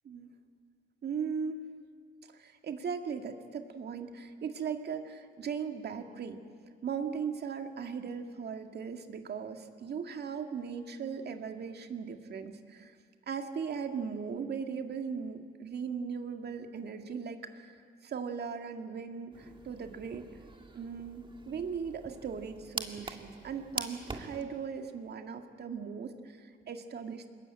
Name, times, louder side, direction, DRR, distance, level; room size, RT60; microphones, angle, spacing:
voice 1, 1.0-1.6 2.3-6.4 6.8-13.0 13.3-17.8 18.0-20.3 20.7-27.3, right 6 dB, 55° right, 5 dB, 2.0 m, -38 dB
sound 1, 19.3-24.4, right 3 dB, 25° right, 1.8 m, -43 dB
22.5 x 20.5 x 8.8 m, 2.1 s
cardioid pair, 90°, 20 cm